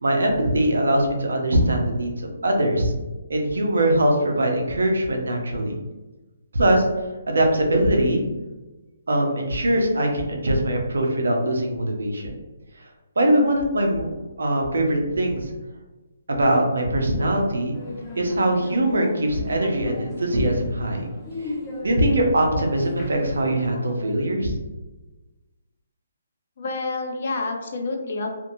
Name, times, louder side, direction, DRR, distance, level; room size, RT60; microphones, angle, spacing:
voice 1, 0.0-2.9 3.3-5.8 6.5-6.9 7.3-8.3 9.1-12.3 12.8-12.9 13.2-14.1 14.4-15.5 16.3-17.8 18.2-21.1 21.4-21.5 21.8-24.5, right 1 dB, 80° right, 1 dB, 0.7 m, -22 dB
sound 1, 17.7-24.1, left 2 dB, 15° left, 0.6 m, -37 dB
voice 2, 26.6-28.3, left 3 dB, 55° left, 3 dB, 0.5 m, -28 dB
2.7 x 2.5 x 2.6 m, 1.1 s
hypercardioid pair, 155°, 0 cm